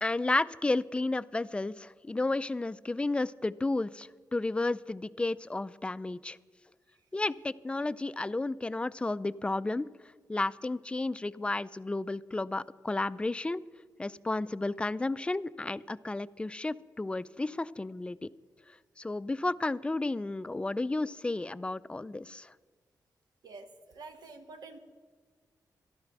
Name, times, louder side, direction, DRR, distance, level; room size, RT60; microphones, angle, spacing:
voice 1, 0.0-6.4 7.1-9.9 10.3-13.6 14.0-18.3 19.0-22.5, left 2 dB, 15° left, 16 dB, 0.4 m, -32 dB
voice 2, 23.4-24.8, right 3 dB, 80° right, 6 dB, 1.3 m, -48 dB
13.0 x 11.5 x 6.1 m, 1.5 s
cardioid pair, 80°, 7 cm